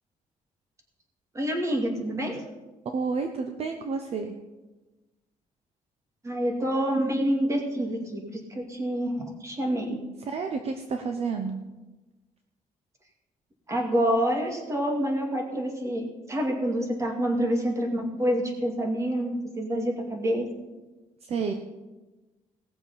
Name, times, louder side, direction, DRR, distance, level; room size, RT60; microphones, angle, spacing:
voice 1, 1.3-2.4 6.2-10.0 13.7-20.5, equal, 20° right, 1 dB, 2.3 m, -27 dB
voice 2, 2.8-4.4 10.3-11.6 21.2-21.5, right 5 dB, 50° right, 5 dB, 0.9 m, -30 dB
18.0 x 6.9 x 5.6 m, 1.1 s
cardioid pair, 155°, 14 cm